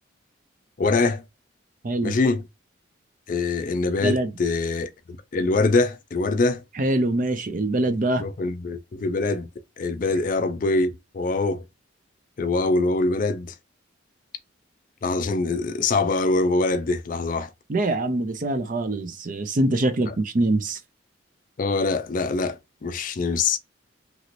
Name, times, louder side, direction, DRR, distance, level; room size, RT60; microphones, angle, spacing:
voice 1, 0.8-1.2 2.0-2.4 3.3-4.9 5.3-6.6 8.2-9.5 9.8-11.6 12.4-13.5 15.0-17.5 20.1-20.2 21.6-23.6, left 3 dB, 45° left, 0.4 m, -24 dB
voice 2, 1.8-2.2 4.0-4.3 6.8-8.3 17.7-20.8, right 2 dB, 40° right, 0.5 m, -24 dB
3.0 x 2.9 x 2.5 m
head